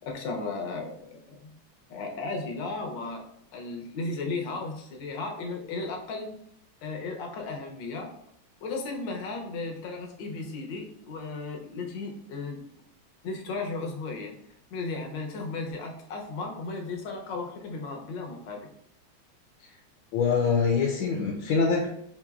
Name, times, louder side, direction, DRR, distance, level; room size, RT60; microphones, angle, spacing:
voice 1, 0.1-1.5 1.9-3.2 3.5-6.3 6.8-8.1 8.6-12.6 13.2-14.4 14.7-18.7, left 3 dB, 70° left, 2 dB, 1.4 m, -35 dB
voice 2, 20.1-21.9, left 5 dB, 85° left, 0 dB, 1.4 m, -24 dB
5.0 x 3.0 x 2.3 m, 0.72 s
omnidirectional pair, 2.2 m